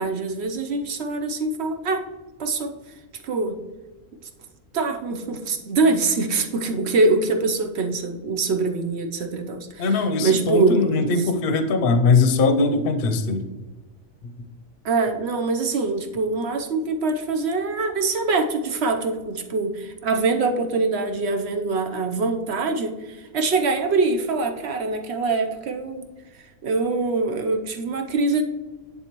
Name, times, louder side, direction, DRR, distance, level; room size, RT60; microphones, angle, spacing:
voice 1, 0.0-2.0 2.4-2.8 3.2-3.6 4.7-11.3 14.8-26.1 26.3-28.4, right 3 dB, 55° right, 5 dB, 1.0 m, -24 dB
voice 2, 9.8-13.5, left 3 dB, 50° left, 8 dB, 0.8 m, -20 dB
10.5 x 4.1 x 3.0 m, 1.2 s
omnidirectional pair, 1.4 m